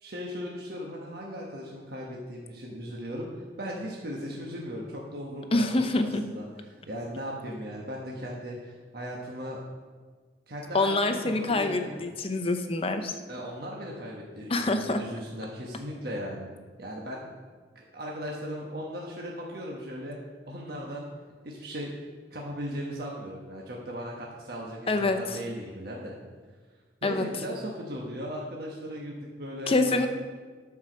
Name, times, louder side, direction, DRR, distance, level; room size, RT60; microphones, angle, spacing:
voice 1, 0.0-3.3 3.6-6.5 6.9-9.6 10.5-12.0 13.3-16.5 16.8-17.2 17.7-20.2 20.5-21.1 21.4-21.9 22.3-26.2 27.0-30.1, equal, 60° right, -2 dB, 1.2 m, -37 dB
voice 2, 5.5-6.2 10.7-13.1 14.5-15.0 24.9-25.4 27.0-27.3 29.7-30.1, left 2 dB, 30° left, 7 dB, 0.7 m, -26 dB
12.0 x 4.8 x 6.1 m, 1.5 s
head